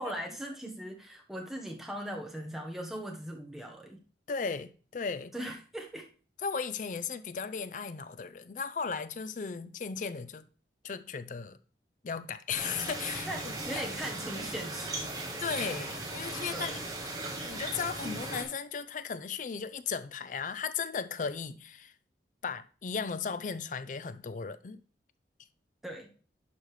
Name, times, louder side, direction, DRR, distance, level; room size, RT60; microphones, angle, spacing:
voice 1, 0.0-4.0 5.3-6.1 13.3-13.4 13.6-15.2 16.5-16.8 25.8-26.1, equal, ahead, 1.1 m, -39 dB
voice 2, 4.3-5.3 6.4-10.4 10.8-11.6 12.0-13.8 15.4-16.8 17.4-21.9 22.4-24.8, left 5 dB, 45° left, 0.4 m, -36 dB
sound 1, 12.5-18.4, right 2 dB, 20° right, 1.3 m, -37 dB
11.0 x 5.2 x 3.2 m
head